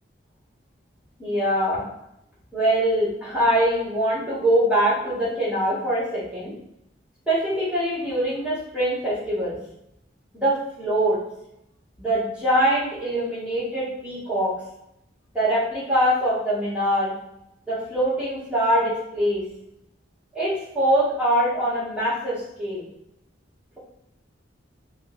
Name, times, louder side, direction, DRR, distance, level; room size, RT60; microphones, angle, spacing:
voice 1, 1.2-1.9 2.5-6.5 7.3-9.6 10.3-11.2 12.0-14.5 15.3-17.1 17.7-19.4 20.3-22.8, right 1 dB, 5° right, -9 dB, 1.4 m, -23 dB
6.2 x 2.3 x 2.5 m, 0.81 s
head